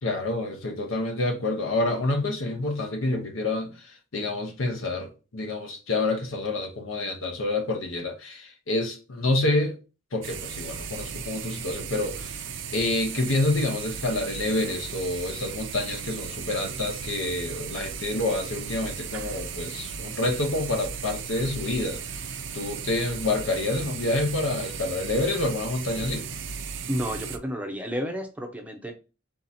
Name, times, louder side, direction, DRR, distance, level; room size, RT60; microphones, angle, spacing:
voice 1, 0.0-9.7 10.1-12.4 12.7-22.3 22.5-26.2, left 2 dB, 80° left, 0.8 m, -28 dB
sound 1, 10.2-27.4, right 6 dB, 65° right, 0.5 m, -36 dB
voice 2, 26.9-28.9, equal, 5° right, 0.5 m, -31 dB
3.6 x 2.8 x 4.0 m
head